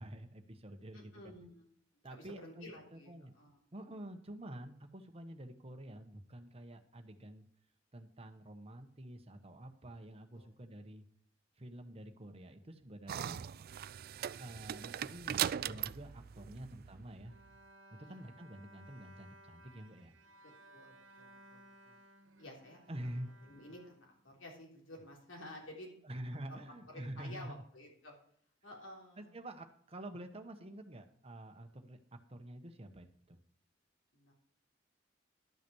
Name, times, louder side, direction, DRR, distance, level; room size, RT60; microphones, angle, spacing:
voice 1, 0.0-1.3 2.0-3.3 3.7-7.5 7.9-11.0 11.6-13.5 14.2-17.3 17.9-20.1 22.9-23.3 26.0-27.6 29.2-33.4, right 1 dB, 30° right, 6 dB, 1.1 m, -48 dB
voice 2, 0.9-1.6 2.0-3.6 10.3-10.5 16.4-16.7 18.0-18.2 20.4-22.0 22.4-22.8 23.1-25.9 26.9-28.1 28.6-29.3 34.1-34.3, left 1 dB, 85° left, -1 dB, 3.5 m, -53 dB
sound 1, 13.1-17.4, right 10 dB, 50° right, 0.3 m, -39 dB
Bowed string instrument, 17.3-24.6, right 1 dB, 85° right, 1.4 m, -60 dB
12.0 x 5.8 x 6.2 m, 0.63 s
head